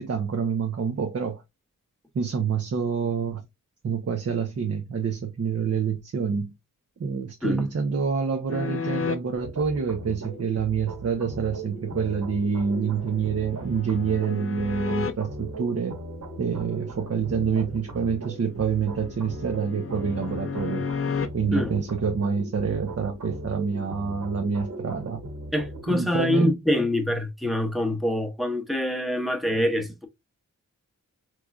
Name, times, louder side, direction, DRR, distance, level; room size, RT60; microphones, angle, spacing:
voice 1, 0.0-1.4 2.1-3.4 3.8-6.5 7.0-16.0 16.4-20.8 21.3-25.2 25.9-26.5, right 6 dB, 50° right, 0.6 m, -27 dB
sound 1, 8.5-9.2 12.5-15.1 18.2-21.3, left 6 dB, 45° left, 0.5 m, -33 dB
sound 2, 9.4-25.9, right 2 dB, 85° right, 1.8 m, -39 dB
voice 2, 25.5-30.1, left 1 dB, ahead, 0.7 m, -25 dB
3.6 x 3.1 x 2.3 m
wide cardioid pair, 95°, 32 cm